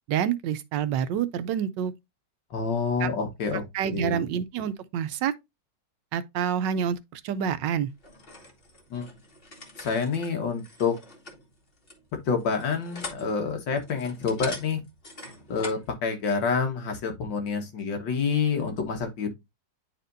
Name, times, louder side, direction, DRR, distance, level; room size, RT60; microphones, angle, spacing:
voice 1, 0.1-1.9 3.0-3.1 3.7-5.3 6.1-7.9, right 8 dB, 80° right, 1.3 m, -27 dB
voice 2, 2.5-4.3 8.9-9.1 9.8-11.0 12.3-14.8 15.5-19.3, left 5 dB, 85° left, 2.1 m, -28 dB
sound 1, 8.0-15.9, left 2 dB, 35° left, 1.5 m, -43 dB
9.8 x 4.3 x 2.6 m
omnidirectional pair, 2.0 m